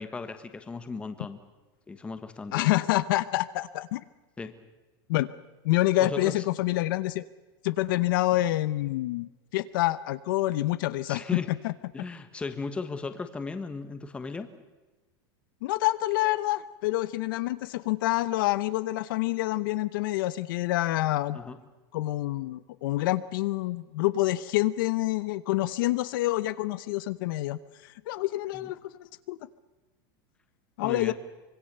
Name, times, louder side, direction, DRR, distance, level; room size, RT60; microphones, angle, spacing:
voice 1, 0.0-1.4 1.9-2.6 4.4-4.6 6.0-6.4 11.0-11.5 11.9-14.5 21.3-21.6 28.5-28.7 30.8-31.1, left 4 dB, 10° left, 9 dB, 1.3 m, -36 dB
voice 2, 2.5-4.0 5.1-5.3 5.6-7.2 7.6-11.7 15.6-21.4 21.9-29.4 30.8-31.1, left 17 dB, 60° left, 15 dB, 0.9 m, -27 dB
25.0 x 22.5 x 6.8 m, 1.2 s
supercardioid pair, 170°, 13 cm